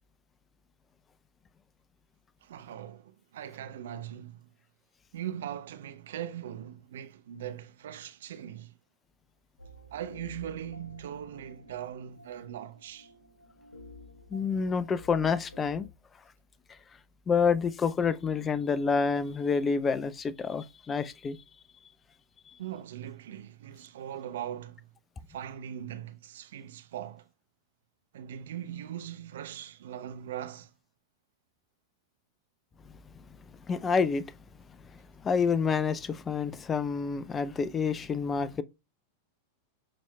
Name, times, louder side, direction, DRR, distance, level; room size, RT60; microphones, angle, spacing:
voice 1, 2.4-4.4 5.1-8.7 9.9-13.1 22.6-24.8 25.3-27.2 28.1-30.7, right 10 dB, 60° right, 0.8 m, -40 dB
sound 1, 9.6-15.9, left 2 dB, 80° left, 1.1 m, -52 dB
voice 2, 14.3-15.9 17.3-21.4 33.7-34.2 35.2-38.6, left 5 dB, 20° left, 0.5 m, -28 dB
11.5 x 4.4 x 2.3 m
figure-of-eight pair, 90°, 0 cm